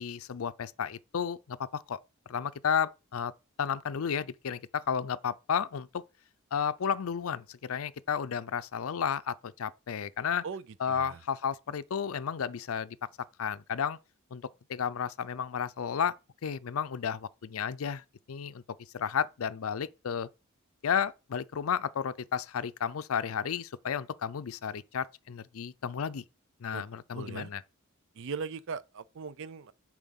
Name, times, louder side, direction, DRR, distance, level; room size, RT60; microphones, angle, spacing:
voice 1, 0.0-2.0 2.3-3.3 3.6-6.0 6.5-10.4 10.8-13.0 13.4-14.0 14.3-14.4 14.7-16.2 16.4-18.6 18.9-20.3 20.8-26.2 26.6-27.6, left 7 dB, 85° left, 0.5 m, -32 dB
voice 2, 10.9-11.2 26.7-26.8 27.1-27.5 28.2-29.7, right 5 dB, 65° right, 0.5 m, -39 dB
7.2 x 4.8 x 7.0 m
head